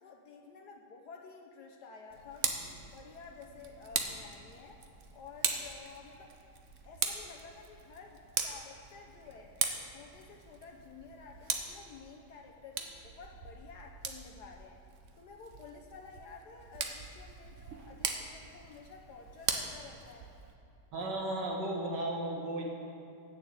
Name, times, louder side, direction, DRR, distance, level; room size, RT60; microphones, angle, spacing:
voice 1, 0.0-4.8 5.1-6.3 6.8-9.5 9.9-14.8 15.2-20.3, left 5 dB, 75° left, 2 dB, 1.4 m, -52 dB
Tick, 2.1-20.5, right 6 dB, 55° right, 1.1 m, -40 dB
voice 2, 20.9-22.6, right 1 dB, 90° right, 0 dB, 2.2 m, -34 dB
9.9 x 6.9 x 8.0 m, 2.8 s
omnidirectional pair, 1.8 m